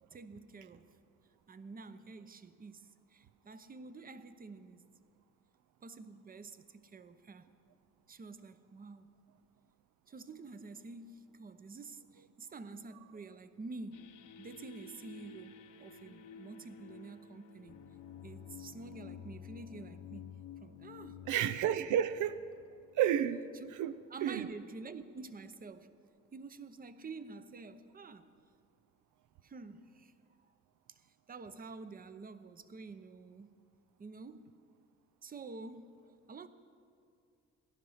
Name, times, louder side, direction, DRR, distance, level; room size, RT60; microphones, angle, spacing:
voice 1, 0.1-0.9 1.5-4.9 5.8-7.5 8.1-9.1 10.1-17.8 18.2-20.3 20.6-21.3 23.6-23.7 24.1-25.9 26.3-28.3 29.4-30.1 30.4-30.5 30.9-33.6 34.0-34.6 35.2-36.5, right 3 dB, 30° right, 0.8 m, -49 dB
sound 1, 13.9-23.3, left 7 dB, 85° left, 0.9 m, -52 dB
voice 2, 21.3-22.5 22.9-24.5, right 10 dB, 80° right, 0.5 m, -32 dB
16.5 x 11.0 x 5.7 m
cardioid pair, 90°, 30 cm